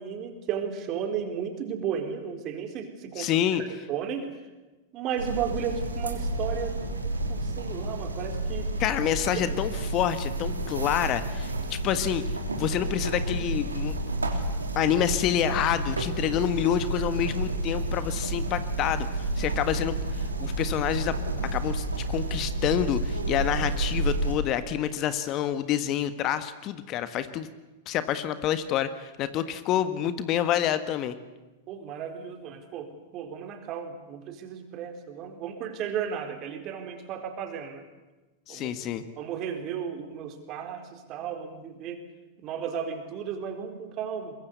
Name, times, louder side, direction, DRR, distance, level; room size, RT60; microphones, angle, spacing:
voice 1, 0.0-4.3 4.9-6.8 7.3-8.7 9.3-9.4 31.7-32.9 33.1-37.8 38.5-38.7 39.2-42.0 42.4-44.3, right 7 dB, 40° right, 6 dB, 4.2 m, -34 dB
voice 2, 3.2-3.6 8.8-12.2 12.6-13.9 14.7-21.2 21.5-27.5 27.8-31.2 38.5-39.0, left 10 dB, 40° left, 12 dB, 1.5 m, -28 dB
sound 1, 5.2-24.4, right 2 dB, 90° right, 3.3 m, -30 dB
23.0 x 22.0 x 8.2 m, 1.2 s
hypercardioid pair, 100°, 0 cm